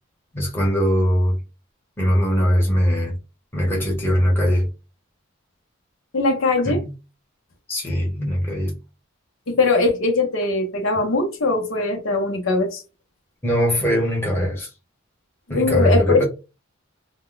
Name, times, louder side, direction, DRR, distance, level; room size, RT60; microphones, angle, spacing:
voice 1, 0.3-1.4 2.0-3.2 3.5-4.7 6.6-6.9 7.7-8.8 13.4-14.7 15.5-16.2, equal, 10° left, 1.0 m, -20 dB
voice 2, 6.1-6.8 9.5-12.8 15.5-16.2, left 3 dB, 80° left, 0.7 m, -20 dB
2.1 x 2.1 x 3.7 m
head